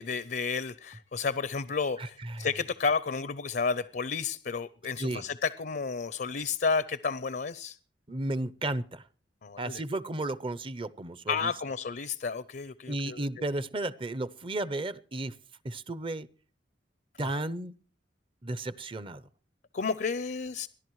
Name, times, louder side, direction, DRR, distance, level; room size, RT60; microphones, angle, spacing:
voice 1, 0.0-7.8 9.4-9.8 11.3-13.3 17.2-17.4 19.7-20.7, left 5 dB, 55° left, 0.6 m, -31 dB
voice 2, 2.0-2.5 5.0-5.2 8.1-9.0 9.6-11.5 12.9-15.4 15.6-16.3 17.2-17.7 18.4-19.3, right 2 dB, 30° right, 0.7 m, -34 dB
30.0 x 11.5 x 3.1 m
head